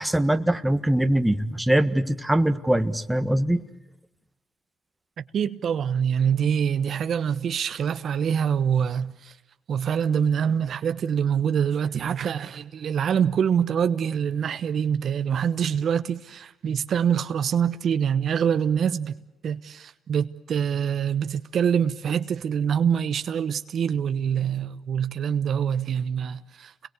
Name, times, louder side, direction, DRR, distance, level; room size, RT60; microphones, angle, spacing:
voice 1, 0.0-3.6, right 1 dB, 5° right, 1.6 m, -22 dB
voice 2, 5.3-9.3 9.7-19.2 19.4-26.9, right 8 dB, 60° right, 1.0 m, -25 dB
29.5 x 22.0 x 8.3 m
cardioid pair, 90°, 0 cm